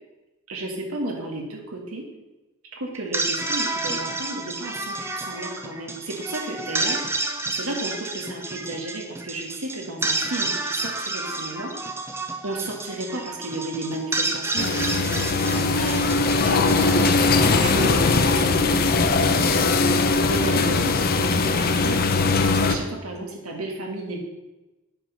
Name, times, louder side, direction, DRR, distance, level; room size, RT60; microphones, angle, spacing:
voice 1, 0.5-2.1 2.7-7.0 7.5-11.7 12.4-16.1 16.5-19.6 20.3-22.0 22.5-24.2, right 2 dB, 85° right, 1 dB, 1.6 m, -32 dB
sound 1, 2.9-18.2, right 2 dB, 10° right, 0.6 m, -30 dB
sound 2, 14.6-22.8, left 3 dB, 45° left, 0.6 m, -20 dB
8.8 x 4.9 x 5.6 m, 1.0 s
head